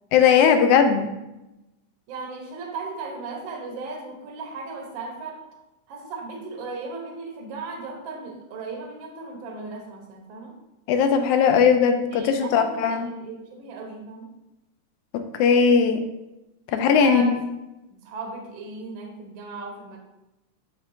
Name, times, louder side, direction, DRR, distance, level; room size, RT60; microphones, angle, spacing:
voice 1, 0.1-1.1 10.9-13.1 15.4-16.0 16.7-17.4, left 6 dB, 85° left, 6 dB, 2.0 m, -18 dB
voice 2, 2.1-5.4 5.9-10.5 12.1-14.3 16.7-17.4 17.9-20.0, right 3 dB, 60° right, 1 dB, 1.3 m, -36 dB
10.5 x 3.5 x 2.6 m, 0.96 s
omnidirectional pair, 3.4 m